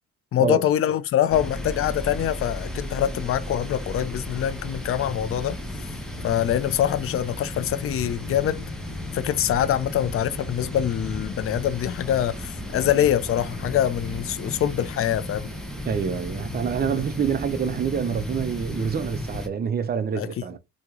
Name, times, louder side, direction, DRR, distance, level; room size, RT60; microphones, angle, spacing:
voice 1, 0.3-5.6 6.2-8.6 9.1-15.5 20.2-20.3, left 11 dB, 50° left, 0.5 m, -24 dB
sound 1, 1.3-19.5, left 1 dB, ahead, 1.0 m, -34 dB
voice 2, 15.9-20.6, right 7 dB, 30° right, 0.6 m, -26 dB
3.0 x 2.8 x 3.7 m
cardioid pair, 90°, 30 cm